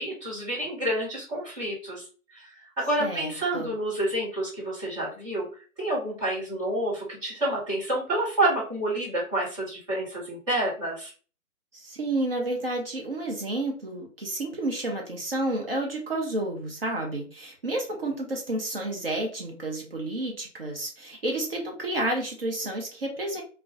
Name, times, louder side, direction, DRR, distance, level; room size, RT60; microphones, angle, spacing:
voice 1, 0.0-5.5 5.8-11.1, right 1 dB, 20° right, -6 dB, 1.4 m, -29 dB
voice 2, 3.0-3.7 11.7-23.4, right 1 dB, 40° right, 1 dB, 0.7 m, -30 dB
2.3 x 2.3 x 3.6 m, 0.39 s
figure-of-eight pair, 155°, 43 cm